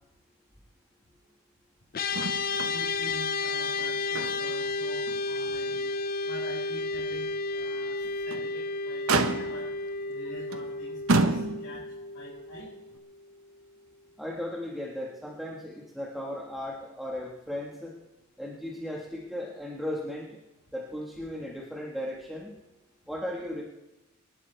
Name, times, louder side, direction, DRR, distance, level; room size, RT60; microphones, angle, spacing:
sound 1, 1.9-13.4, left 3 dB, 45° left, 0.6 m, -32 dB
Motor vehicle (road), 2.1-2.8 3.1-3.2 3.7-4.6 5.1-5.2 5.7-5.8 8.0-8.5 9.1-9.8 10.5-10.7 11.1-11.9 12.9-13.0, right 3 dB, 85° right, 1.1 m, -28 dB
voice 1, 2.5-5.8 6.2-7.3 7.5-9.7 10.0-11.8 12.1-12.7, equal, 90° left, -6 dB, 5.0 m, -45 dB
voice 2, 14.2-17.9 18.4-20.3 20.7-22.5 23.1-23.6, left 1 dB, ahead, -3 dB, 1.6 m, -36 dB
27.0 x 12.0 x 3.4 m, 0.99 s
head